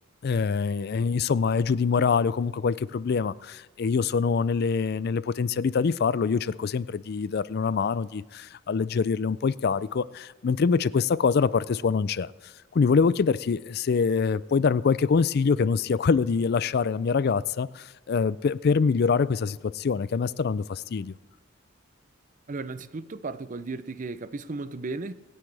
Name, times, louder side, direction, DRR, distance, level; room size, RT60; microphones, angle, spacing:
voice 1, 0.2-12.3 12.7-21.1, left 5 dB, 50° left, 0.4 m, -25 dB
voice 2, 22.5-25.1, right 3 dB, 40° right, 0.5 m, -35 dB
25.5 x 9.8 x 3.4 m
head